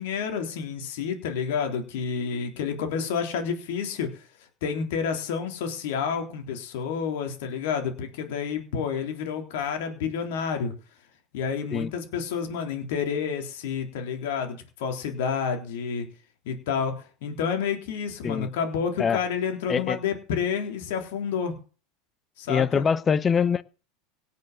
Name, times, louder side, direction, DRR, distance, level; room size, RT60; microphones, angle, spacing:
voice 1, 0.0-4.2 4.6-10.7 11.3-16.1 16.5-21.6 22.4-22.9, left 6 dB, 70° left, 3.7 m, -29 dB
voice 2, 22.5-23.6, left 6 dB, 30° left, 0.8 m, -23 dB
17.5 x 6.9 x 7.5 m
hypercardioid pair, 90°, 0 cm